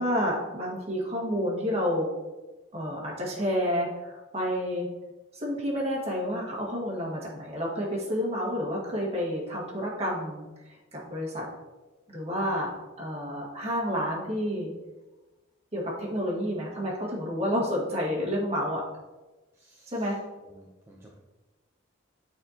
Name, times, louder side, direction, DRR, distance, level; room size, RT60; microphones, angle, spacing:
voice 1, 0.0-2.1 2.7-4.9 5.3-10.5 10.9-11.5 12.1-12.7 13.0-14.7 15.7-18.8 19.9-20.2, equal, 35° right, -4 dB, 1.8 m, -29 dB
voice 2, 19.5-20.2 20.5-21.2, right 1 dB, 15° right, -3 dB, 0.6 m, -55 dB
8.8 x 4.4 x 2.9 m, 1.1 s
head